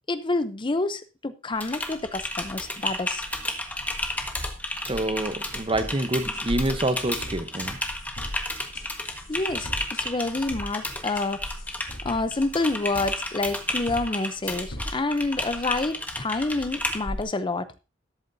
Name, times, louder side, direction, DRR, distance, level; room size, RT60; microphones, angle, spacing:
voice 1, 0.1-3.2 9.3-9.7 10.0-11.4 12.0-17.7, left 2 dB, 25° left, 0.6 m, -28 dB
Typing, 1.5-17.2, left 1 dB, 10° left, 1.4 m, -32 dB
sound 1, 3.8-8.7 9.0-10.1 10.3-10.4, equal, 85° right, 3.9 m, -53 dB
voice 2, 4.9-7.8, right 1 dB, 25° right, 0.9 m, -27 dB
sound 2, 5.7-5.9 6.3-6.7 7.0-7.6 8.0-8.3 8.7-10.7 11.0-13.1 13.5-14.0 14.3-14.9, equal, 75° left, 4.1 m, -39 dB
13.0 x 11.5 x 2.7 m
head